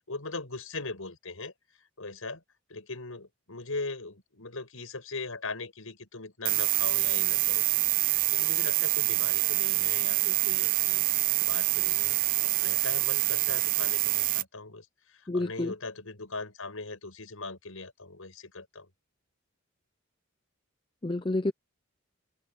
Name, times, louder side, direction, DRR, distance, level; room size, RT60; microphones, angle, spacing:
voice 1, 0.1-2.4 2.7-7.6 8.0-11.0 11.4-18.9, left 3 dB, 80° left, 5.7 m, -40 dB
Lamp Buzz, 6.4-14.4, right 16 dB, 40° right, 0.5 m, -26 dB
voice 2, 15.3-15.7 21.0-21.5, left 2 dB, 25° left, 0.6 m, -29 dB
open air
head